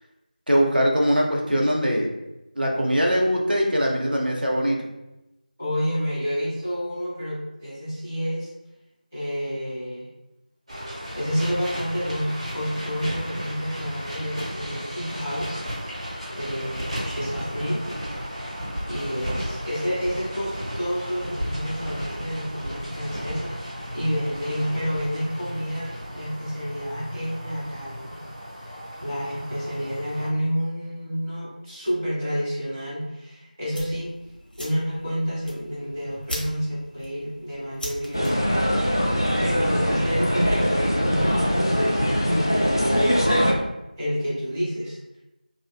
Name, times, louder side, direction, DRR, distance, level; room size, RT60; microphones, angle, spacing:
voice 1, 0.5-2.1 2.6-4.8, equal, 85° right, -1 dB, 0.8 m, -21 dB
voice 2, 5.6-8.5 9.1-10.1 11.1-15.6 16.3-17.8 18.9-28.2 28.6-34.1 34.6-38.8 39.1-43.2 44.0-45.0, equal, 10° right, -16 dB, 0.7 m, -29 dB
sound 1, 10.7-30.3, equal, 40° right, 1.0 m, -34 dB
sound 2, 33.7-40.8, equal, 80° left, 1.1 m, -37 dB
sound 3, 38.1-43.5, equal, 30° left, 0.4 m, -22 dB
3.2 x 2.5 x 2.3 m, 0.95 s
figure-of-eight pair, 175°, 5 cm